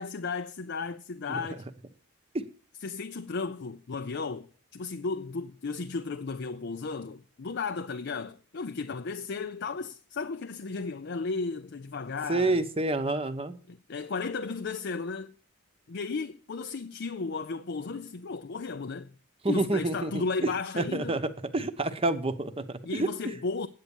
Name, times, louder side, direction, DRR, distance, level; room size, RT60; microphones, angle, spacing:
voice 1, 0.0-1.7 2.8-12.6 13.7-15.3 15.9-19.1 19.5-21.2 22.8-23.7, left 4 dB, 50° left, 0.5 m, -34 dB
voice 2, 12.3-13.5 19.4-20.5 20.8-21.2 21.5-23.1, right 2 dB, 25° right, 0.9 m, -28 dB
9.1 x 8.5 x 7.0 m
head